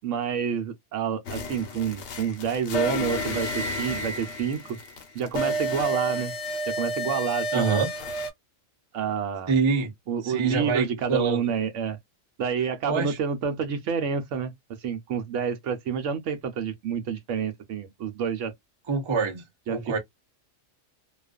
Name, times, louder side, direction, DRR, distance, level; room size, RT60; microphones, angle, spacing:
voice 1, 0.0-4.8 5.1-6.3 6.7-7.8 8.9-9.6 10.1-12.0 12.4-14.5 14.8-18.5 19.7-20.0, right 7 dB, 70° right, 0.9 m, -28 dB
sound 1, 1.3-8.3, equal, 65° left, 0.9 m, -31 dB
voice 2, 7.5-7.9 9.5-9.9 10.2-11.4 12.9-13.2 18.9-20.0, right 4 dB, 35° right, 0.5 m, -26 dB
2.4 x 2.3 x 2.2 m
omnidirectional pair, 1.4 m